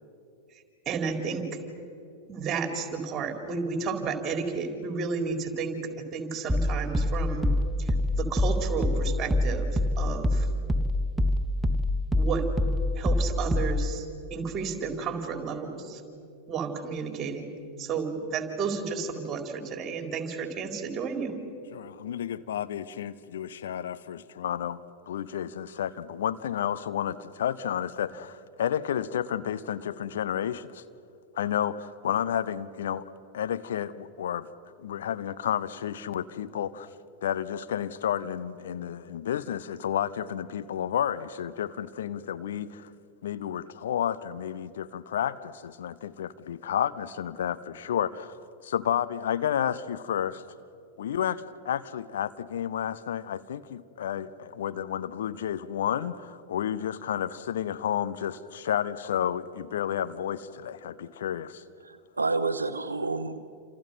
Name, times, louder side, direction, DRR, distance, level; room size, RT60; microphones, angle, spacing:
voice 1, 0.5-1.5 2.3-5.8 6.1-7.5 7.8-10.5 12.2-12.5 13.0-16.0 16.5-17.5 17.8-21.3, right 5 dB, 25° right, 4 dB, 4.1 m, -32 dB
sound 1, 6.5-14.0, left 1 dB, 10° right, 0.8 m, -26 dB
voice 2, 21.7-24.8 25.1-30.8 31.4-33.1 33.3-34.5 34.8-36.9 37.2-42.9 43.2-48.3 48.6-50.4 51.0-61.6, left 9 dB, 60° left, 14 dB, 0.7 m, -31 dB
voice 3, 61.8-63.5, right 3 dB, 80° right, 12 dB, 0.8 m, -29 dB
29.0 x 27.5 x 5.7 m, 2.5 s
figure-of-eight pair, 90°, 0 cm